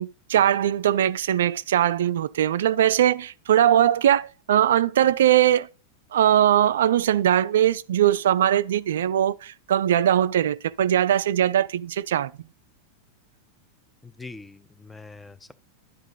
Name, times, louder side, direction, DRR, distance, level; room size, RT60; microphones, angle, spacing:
voice 1, 0.0-5.7 6.1-12.3, right 11 dB, 60° right, 0.3 m, -21 dB
voice 2, 14.0-15.5, left 3 dB, 10° left, 0.6 m, -43 dB
11.5 x 5.1 x 3.8 m
figure-of-eight pair, 90°, 0 cm